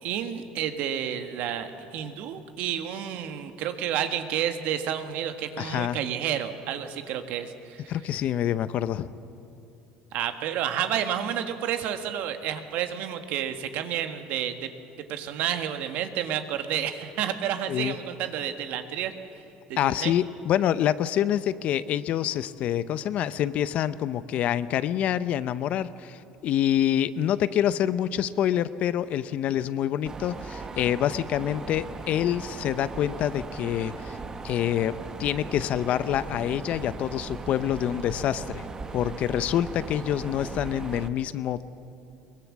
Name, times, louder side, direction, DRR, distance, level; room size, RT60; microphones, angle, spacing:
voice 1, 0.0-7.9 10.1-14.7 15.1-19.1 19.7-20.2, right 10 dB, 65° right, 8 dB, 1.5 m, -30 dB
voice 2, 5.6-6.0 7.9-9.1 17.7-17.9 19.8-34.2 34.4-38.6 38.9-41.7, left 11 dB, 50° left, 15 dB, 0.7 m, -26 dB
Mechanisms, 30.0-41.1, right 3 dB, 25° right, 1.1 m, -38 dB
22.5 x 20.5 x 7.3 m, 2.8 s
cardioid pair, 130°, 3 cm